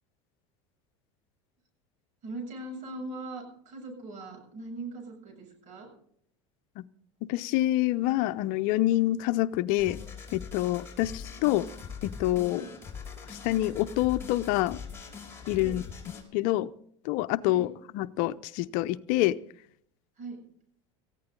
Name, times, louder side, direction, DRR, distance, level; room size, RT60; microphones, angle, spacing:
voice 1, 2.2-5.9 11.6-11.7 12.5-12.7 15.6-15.8 17.4-17.7 20.2-20.4, right 2 dB, 55° right, 5 dB, 7.1 m, -40 dB
voice 2, 7.2-10.0 10.3-11.6 12.0-12.6 13.3-14.8 15.5-15.8 16.3-16.7 17.1-17.7 17.9-19.4, left 16 dB, 65° left, 14 dB, 0.7 m, -26 dB
sound 1, 9.8-16.2, left 5 dB, 15° left, 5.3 m, -42 dB
18.5 x 15.0 x 3.8 m, 0.64 s
hypercardioid pair, 95°, 15 cm